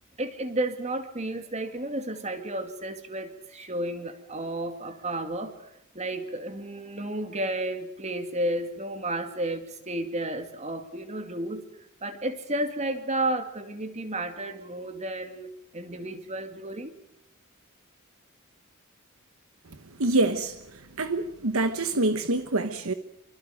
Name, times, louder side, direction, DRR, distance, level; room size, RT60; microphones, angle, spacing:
voice 1, 0.2-11.6 12.0-16.9, right 1 dB, 30° right, 2.4 m, -32 dB
voice 2, 20.0-20.6 21.0-22.9, right 2 dB, 80° right, 1.2 m, -25 dB
27.0 x 25.0 x 5.2 m
head